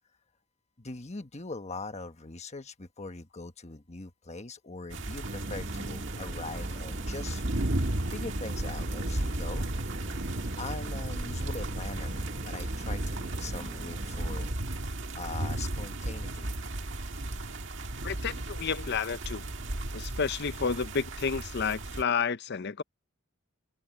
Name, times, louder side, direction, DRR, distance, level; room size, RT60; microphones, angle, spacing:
voice 1, 0.8-7.4 8.1-9.7 10.6-14.5 15.2-16.6, left 3 dB, 30° left, 1.3 m, -41 dB
sound 1, 4.9-22.0, right 1 dB, 60° right, 1.8 m, -34 dB
sound 2, 5.2-14.5, right 1 dB, 40° right, 1.4 m, -42 dB
voice 2, 18.0-19.5 19.9-22.8, left 6 dB, 50° left, 0.6 m, -31 dB
head